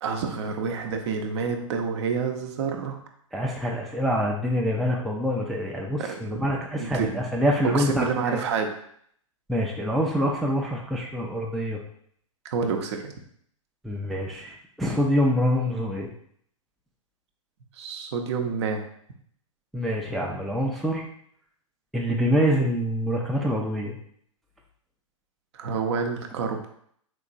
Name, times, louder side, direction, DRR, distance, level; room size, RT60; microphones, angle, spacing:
voice 1, 0.0-3.0 6.0-6.1 6.3-6.4 6.8-7.2 7.6-8.7 12.4-13.1 17.7-18.8 25.5-26.7, right 5 dB, 55° right, 4 dB, 0.6 m, -28 dB
voice 2, 3.3-8.4 9.5-11.8 13.8-16.1 19.7-21.1 21.9-24.0, equal, ahead, -2 dB, 0.3 m, -25 dB
3.7 x 2.9 x 2.5 m, 0.65 s
hypercardioid pair, 110°, 17 cm